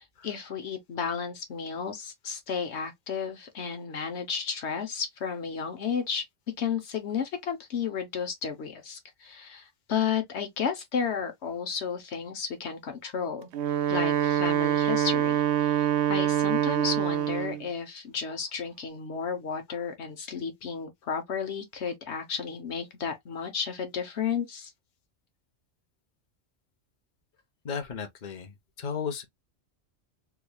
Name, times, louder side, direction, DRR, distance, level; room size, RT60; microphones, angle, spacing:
voice 1, 0.0-6.2 6.6-13.5 13.9-24.7, left 6 dB, 80° left, 1.2 m, -33 dB
Wind instrument woodwind instrument, 13.4-17.6, right 10 dB, 80° right, 0.9 m, -25 dB
voice 2, 27.6-29.3, left 6 dB, 45° left, 1.0 m, -35 dB
3.6 x 3.2 x 2.2 m
omnidirectional pair, 1.1 m